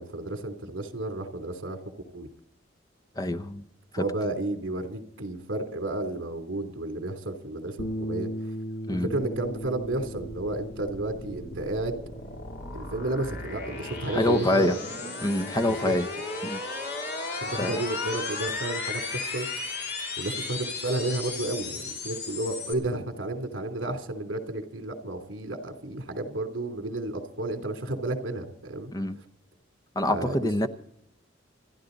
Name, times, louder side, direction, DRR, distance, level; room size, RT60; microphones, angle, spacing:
voice 1, 0.0-1.8 2.1-2.3 4.0-8.5 8.9-12.0 12.7-14.7 15.7-15.9 17.3-19.8 20.2-28.9 30.1-30.7, right 2 dB, 70° right, 3.0 m, -32 dB
voice 2, 3.2-3.6 3.9-4.0 8.9-9.1 14.1-14.8 15.2-16.1 16.4-16.6 17.6-17.8 28.9-29.2 30.0-30.7, left 1 dB, 20° left, 0.8 m, -26 dB
Bass guitar, 7.8-14.0, equal, 85° left, 1.9 m, -38 dB
sound 1, 9.8-22.7, left 3 dB, 55° left, 3.1 m, -36 dB
28.5 x 11.5 x 4.0 m
head